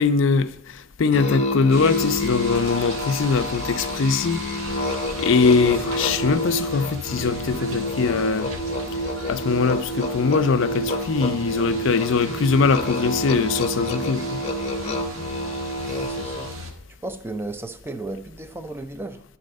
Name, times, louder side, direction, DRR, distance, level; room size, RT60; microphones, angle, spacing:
voice 1, 0.0-4.4 5.2-8.5 9.3-14.4, left 5 dB, 60° left, 0.4 m, -22 dB
Musical instrument, 1.1-16.7, equal, 30° left, 0.8 m, -28 dB
sound 1, 1.7-16.7, equal, 80° right, 1.4 m, -37 dB
voice 2, 15.9-16.5 17.0-19.2, right 2 dB, 10° right, 0.4 m, -34 dB
11.0 x 4.1 x 5.2 m
head